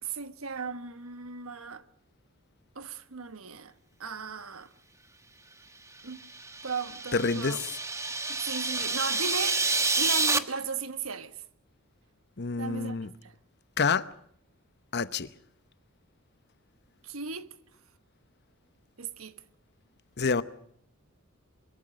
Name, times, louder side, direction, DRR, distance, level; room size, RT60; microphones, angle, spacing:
voice 1, 0.0-1.8 2.7-3.7 4.0-4.7 6.0-6.2 6.6-7.6 8.3-9.6 10.0-11.4 12.6-13.0 13.2-13.3 17.0-17.5 19.0-19.3, right 5 dB, 80° right, 1.4 m, -36 dB
sound 1, 6.2-10.4, right 3 dB, 15° right, 1.1 m, -29 dB
voice 2, 7.1-7.8 12.4-13.1 13.8-14.1 14.9-15.3 20.2-20.4, left 4 dB, 50° left, 0.9 m, -28 dB
24.0 x 22.0 x 6.4 m
head